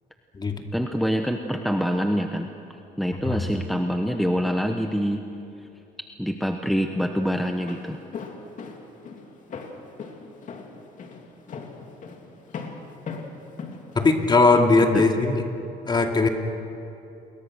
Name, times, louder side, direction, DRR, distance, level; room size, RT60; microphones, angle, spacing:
voice 1, 0.7-2.5 3.0-5.2 6.2-8.0 14.9-15.1, equal, ahead, 5 dB, 1.1 m, -25 dB
Walk footsteps, 7.5-14.6, left 5 dB, 50° left, 2.8 m, -39 dB
voice 2, 13.9-15.4 15.9-16.3, left 3 dB, 25° left, 3 dB, 2.5 m, -19 dB
28.5 x 22.0 x 6.5 m, 2.8 s
cardioid pair, 110°, 17 cm